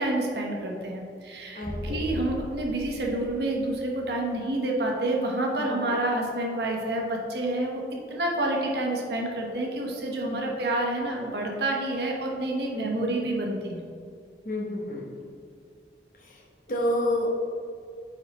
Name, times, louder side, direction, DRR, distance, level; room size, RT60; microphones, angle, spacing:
voice 1, 0.0-13.8, right 1 dB, 70° right, 0 dB, 1.1 m, -28 dB
voice 2, 1.5-2.1 5.5-5.9 10.3-10.6 12.7-13.2 14.4-15.1 16.2-16.4 16.7-17.3, left 1 dB, 50° left, -3 dB, 1.1 m, -30 dB
sound 1, 1.6-4.2, left 1 dB, 25° right, 0.6 m, -37 dB
8.5 x 4.3 x 3.0 m, 2.3 s
head